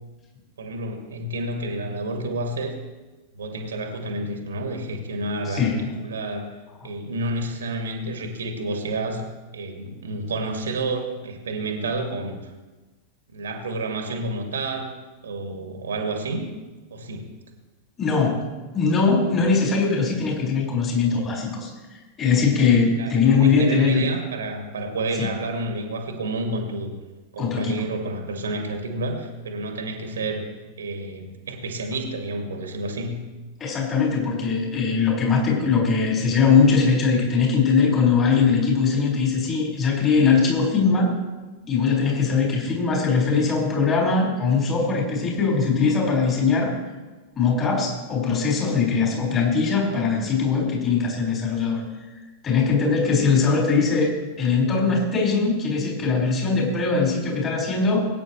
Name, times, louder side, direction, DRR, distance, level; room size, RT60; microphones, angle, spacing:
voice 1, 0.6-2.7 3.3-5.7 6.0-6.5 6.8-9.2 9.5-12.4 13.3-14.9 15.2-16.5 16.9-17.2 23.0-26.9 27.3-30.4 30.8-33.2, right 2 dB, 65° right, 3 dB, 2.1 m, -30 dB
voice 2, 5.5-5.9 18.0-18.4 18.7-21.7 22.2-24.1 25.2-25.3 27.4-27.8 33.6-41.1 41.7-46.8 47.4-51.8 52.4-58.1, left 5 dB, 25° left, -3 dB, 4.9 m, -21 dB
21.5 x 9.3 x 3.2 m, 1.2 s
figure-of-eight pair, 90°, 0 cm